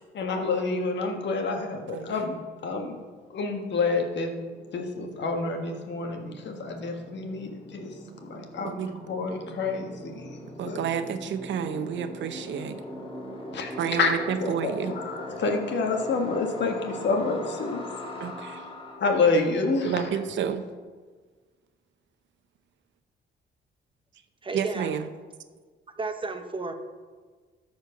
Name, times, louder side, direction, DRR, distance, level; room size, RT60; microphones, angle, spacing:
voice 1, 0.1-2.4 2.6-3.0 3.3-4.3 4.7-7.9 8.2-8.7 9.1-10.4 10.6-10.8 13.5-14.1 14.4-17.8 19.0-19.9, left 3 dB, 65° left, 1.6 m, -28 dB
sound 1, 4.4-19.0, left 1 dB, 25° left, 2.4 m, -40 dB
voice 2, 10.6-12.8 13.8-15.0 18.2-18.7 19.8-20.7 24.5-25.1, right 8 dB, 70° right, 0.7 m, -30 dB
voice 3, 24.4-25.0 26.0-26.7, right 3 dB, 25° right, 0.9 m, -32 dB
13.0 x 4.5 x 5.8 m
cardioid pair, 90°, 20 cm